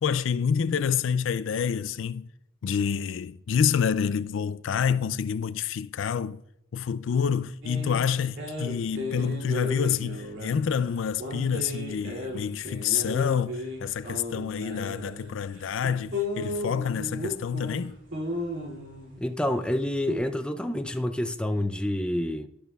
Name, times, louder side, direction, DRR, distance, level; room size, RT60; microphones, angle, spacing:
voice 1, 0.0-2.3 2.6-6.4 6.7-18.0, left 7 dB, 70° left, 0.4 m, -27 dB
sound 1, 7.6-20.2, left 1 dB, 65° right, 2.8 m, -36 dB
voice 2, 19.2-22.5, left 1 dB, 5° left, 0.4 m, -28 dB
12.0 x 11.0 x 2.4 m
head